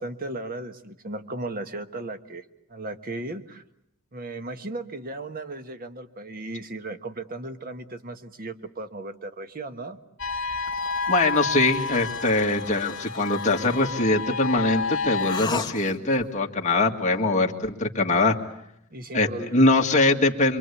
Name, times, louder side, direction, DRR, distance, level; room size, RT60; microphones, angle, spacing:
voice 1, 0.0-2.4 2.7-3.6 4.1-10.0 18.9-19.7, right 2 dB, 45° right, 8 dB, 1.4 m, -36 dB
sound 1, 10.2-15.4, left 4 dB, 65° left, 2.7 m, -30 dB
sound 2, 10.7-14.1 15.2-16.3, left 4 dB, 20° left, 1.4 m, -38 dB
voice 2, 11.1-18.4 19.1-20.6, left 2 dB, 35° left, 2 dB, 2.0 m, -22 dB
27.0 x 23.5 x 8.4 m, 0.78 s
head